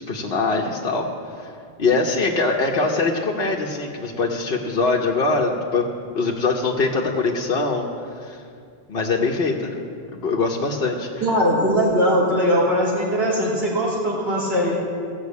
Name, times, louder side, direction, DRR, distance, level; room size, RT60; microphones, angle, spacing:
voice 1, 0.1-1.1 1.4-1.5 1.8-5.8 6.1-7.9 8.2-8.4 8.9-9.7 10.1-11.1, left 3 dB, 70° left, -1 dB, 1.2 m, -22 dB
voice 2, 11.2-14.8, equal, 80° right, -5 dB, 3.3 m, -20 dB
15.0 x 6.0 x 8.3 m, 2.3 s
omnidirectional pair, 1.0 m